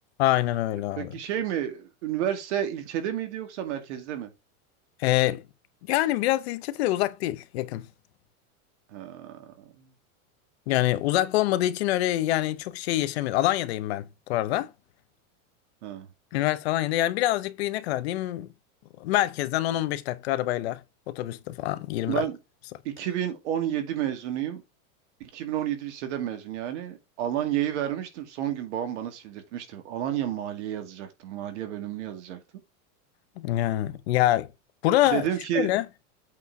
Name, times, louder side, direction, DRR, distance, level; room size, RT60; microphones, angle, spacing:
voice 1, 0.2-1.1 5.0-5.4 5.9-7.9 10.7-14.7 16.3-18.5 19.0-20.8 21.1-22.2 33.4-34.5 34.8-35.3 35.5-35.8, left 14 dB, 45° left, 0.8 m, -25 dB
voice 2, 1.0-4.3 8.9-9.9 15.8-16.1 22.1-22.4 22.8-24.6 25.2-32.4 35.1-35.7, right 11 dB, 50° right, 2.2 m, -31 dB
8.4 x 4.4 x 4.8 m
supercardioid pair, 175°, 44 cm